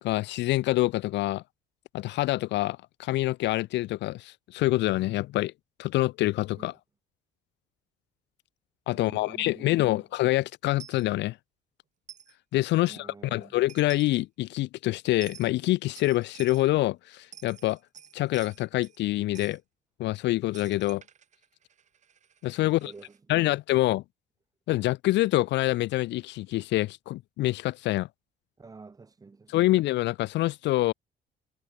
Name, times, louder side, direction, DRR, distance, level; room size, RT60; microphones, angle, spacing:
voice 1, 0.0-1.4 1.9-5.5 5.8-6.7 8.9-11.4 12.5-17.8 18.1-19.6 20.0-21.0 22.4-22.9 23.3-24.0 24.7-28.1 29.5-30.9, left 17 dB, 70° left, 0.5 m, -26 dB
voice 2, 8.9-10.0 12.8-13.6 22.6-23.5 28.6-29.6, right 4 dB, 20° right, 4.8 m, -49 dB
Coin (dropping), 10.8-11.1 12.1-12.3 13.4-13.5 13.7-14.2 15.2-15.5 16.0-16.7 17.2-19.0 19.4-19.6 20.5-23.2, right 8 dB, 40° right, 6.3 m, -49 dB
cardioid pair, 160°, 19 cm